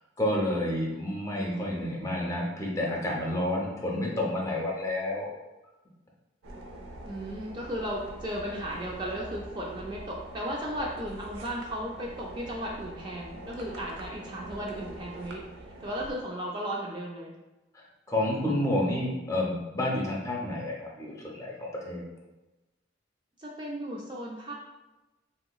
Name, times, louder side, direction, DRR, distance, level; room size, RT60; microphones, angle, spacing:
voice 1, 0.2-5.3 17.7-22.0, left 1 dB, 15° left, -3 dB, 0.6 m, -30 dB
voice 2, 1.4-1.9 7.1-15.4 15.8-17.3 23.4-24.5, equal, 25° right, -2 dB, 0.3 m, -35 dB
sound 1, 6.4-16.1, right 1 dB, 90° right, 0.6 m, -44 dB
3.8 x 2.8 x 2.2 m, 1.1 s
head